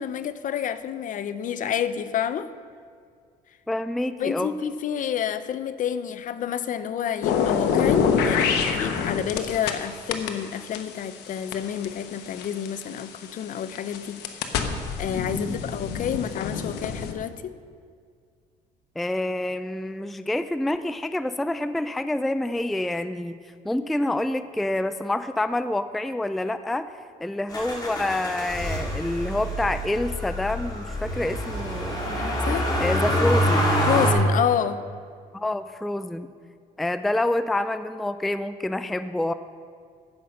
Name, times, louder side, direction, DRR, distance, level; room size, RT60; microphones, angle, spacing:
voice 1, 0.0-2.5 4.2-14.2 15.0-17.6 32.2-32.7 33.9-34.8, left 9 dB, 50° left, 13 dB, 0.6 m, -29 dB
voice 2, 3.7-4.6 15.3-15.6 19.0-23.4 23.6-26.9 27.2-32.0 32.8-33.8 35.3-36.3 36.8-39.3, left 1 dB, ahead, 12 dB, 0.3 m, -27 dB
sound 1, 7.2-9.8 10.1-13.0 13.6-17.1, left 6 dB, 85° left, 1.0 m, -26 dB
Motor vehicle (road), 27.5-34.1, equal, 25° left, 2.5 m, -26 dB
14.5 x 5.8 x 6.4 m, 2.1 s
cardioid pair, 110°, 17 cm